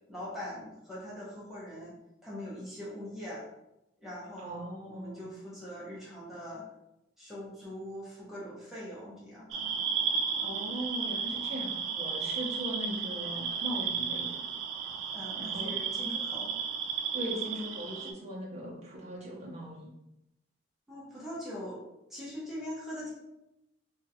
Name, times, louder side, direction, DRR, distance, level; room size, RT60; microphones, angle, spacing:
voice 1, 0.1-2.0 2.2-3.4 4.0-4.6 4.9-6.7 7.2-9.7 15.1-16.5 20.9-21.8 22.1-23.1, equal, ahead, -8 dB, 0.9 m, -42 dB
voice 2, 4.4-5.3 10.4-14.3 15.3-15.8 17.1-19.9, equal, 35° right, -4 dB, 0.8 m, -39 dB
sound 1, 9.5-18.1, right 6 dB, 75° right, 0.3 m, -33 dB
2.9 x 2.5 x 2.8 m, 0.89 s
head